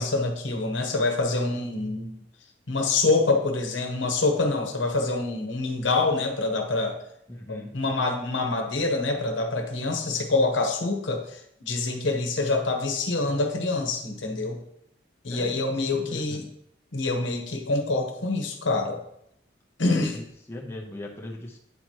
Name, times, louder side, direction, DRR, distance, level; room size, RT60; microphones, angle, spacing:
voice 1, 0.0-2.1 2.7-7.0 7.5-14.6 15.2-16.5 16.9-19.0 19.8-20.2, left 3 dB, 75° left, 4 dB, 1.0 m, -26 dB
voice 2, 7.3-7.7 15.3-16.5 20.1-21.6, left 1 dB, 15° left, -2 dB, 0.7 m, -39 dB
8.6 x 3.0 x 4.6 m, 0.74 s
head